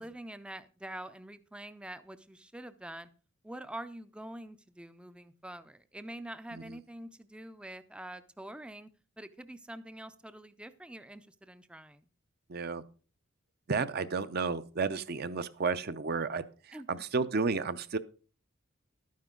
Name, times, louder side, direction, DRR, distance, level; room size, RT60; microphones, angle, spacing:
voice 1, 0.0-3.1 3.4-8.9 9.2-12.1 16.7-16.9, right 1 dB, 5° right, 13 dB, 0.4 m, -45 dB
voice 2, 12.5-12.8 13.7-18.0, right 4 dB, 50° right, 12 dB, 0.6 m, -32 dB
12.0 x 9.5 x 3.8 m, 0.37 s
head